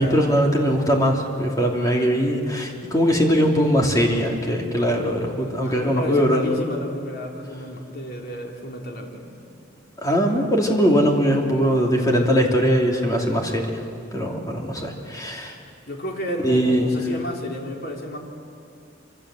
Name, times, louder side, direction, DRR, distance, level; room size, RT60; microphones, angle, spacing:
voice 1, 0.0-6.5 10.0-13.7 14.1-15.5 16.4-16.9, equal, 20° left, 0 dB, 3.0 m, -21 dB
voice 2, 5.6-9.3 15.9-18.2, equal, 50° left, 0 dB, 3.8 m, -32 dB
27.0 x 25.5 x 7.9 m, 2.5 s
head